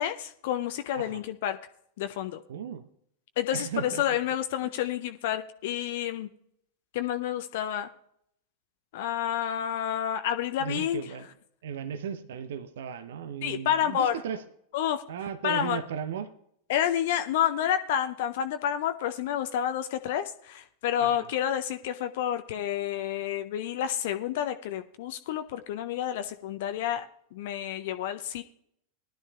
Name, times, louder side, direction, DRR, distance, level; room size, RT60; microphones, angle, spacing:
voice 1, 0.0-1.6 2.0-2.4 3.4-6.3 6.9-7.9 8.9-11.0 13.4-14.1 14.7-15.0 15.4-15.8 16.7-28.4, left 10 dB, 50° left, 9 dB, 0.5 m, -29 dB
voice 2, 2.5-2.8 3.5-4.0 4.6-4.7 10.6-11.3 11.6-14.4 15.1-16.3 21.0-21.3, right 8 dB, 60° right, 12 dB, 0.7 m, -36 dB
20.0 x 11.5 x 2.3 m, 0.72 s
figure-of-eight pair, 90°, 0 cm